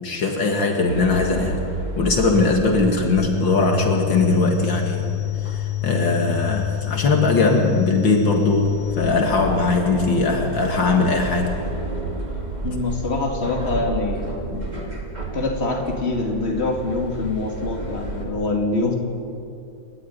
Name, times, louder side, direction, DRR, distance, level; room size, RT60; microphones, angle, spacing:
voice 1, 0.0-1.6 2.0-5.1 5.4-11.6, left 3 dB, 65° left, 2 dB, 2.7 m, -20 dB
sound 1, 0.9-18.2, right 2 dB, 20° right, 3.0 m, -32 dB
sound 2, 3.1-9.1, left 14 dB, 85° left, 2.0 m, -27 dB
voice 2, 12.6-14.7 15.3-19.0, left 3 dB, 30° left, 0 dB, 3.1 m, -25 dB
29.0 x 13.5 x 9.8 m, 2.5 s
omnidirectional pair, 2.2 m